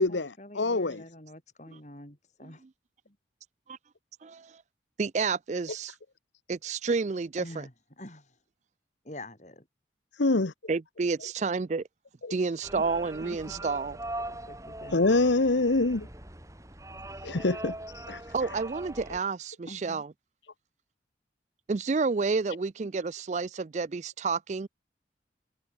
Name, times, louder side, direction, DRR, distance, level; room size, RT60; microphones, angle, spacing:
voice 1, 0.0-2.6 3.0-3.2 7.4-8.4 9.0-9.7 12.7-12.8 13.2-13.6 14.5-15.0 19.7-20.0, left 1 dB, 40° left, 5.1 m, -46 dB
voice 2, 0.5-1.0 10.2-10.5 12.2-12.3 14.9-16.1 17.2-17.7 18.1-18.2, left 2 dB, 75° left, 1.1 m, -24 dB
voice 3, 4.2-4.6 5.0-5.9 6.5-7.4 10.7-11.8 12.3-14.0 18.3-20.1 21.7-24.7, right 4 dB, 40° right, 0.4 m, -30 dB
sound 1, 12.6-19.2, right 1 dB, 15° right, 3.1 m, -41 dB
head